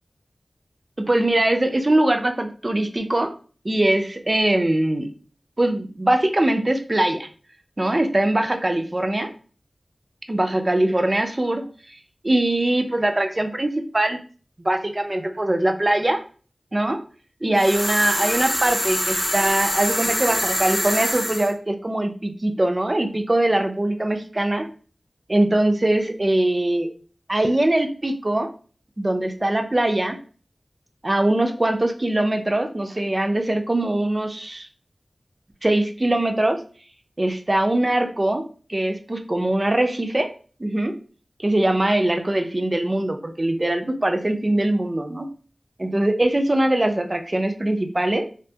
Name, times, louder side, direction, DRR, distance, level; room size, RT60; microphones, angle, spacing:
voice 1, 1.0-3.3 3.6-5.1 5.6-7.3 7.8-9.3 10.3-12.0 12.2-14.2 14.6-16.2 16.7-17.0 17.4-24.7 25.3-26.9 27.3-28.5 29.0-30.2 31.0-34.7 35.6-36.6 37.2-38.4 38.7-40.3 40.6-40.9 41.4-45.3 45.8-48.3, right 1 dB, 35° right, 6 dB, 0.3 m, -22 dB
sound 1, 17.6-21.5, equal, 5° left, 0.6 m, -25 dB
2.4 x 2.3 x 2.7 m, 0.41 s
wide cardioid pair, 50°, 0 cm